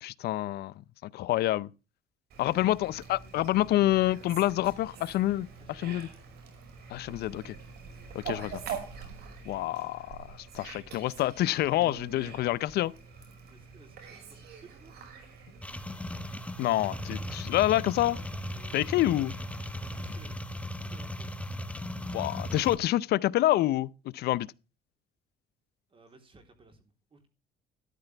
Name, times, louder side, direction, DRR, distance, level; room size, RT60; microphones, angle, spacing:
voice 1, 0.0-0.7 1.0-1.7 2.4-5.5 5.8-6.1 6.9-7.6 8.1-8.6 9.4-12.9 16.6-18.2 18.7-19.3 22.1-24.5, left 15 dB, 70° left, 0.6 m, -27 dB
Fowl, 2.3-20.3, right 6 dB, 70° right, 5.4 m, -46 dB
voice 2, 2.6-3.0 5.6-6.1 13.5-14.9 18.5-19.1 20.0-21.3 25.9-27.3, right 3 dB, 30° right, 3.5 m, -57 dB
sound 1, 15.6-22.8, left 1 dB, 5° left, 1.2 m, -37 dB
13.0 x 11.0 x 3.3 m
cardioid pair, 110°, 17 cm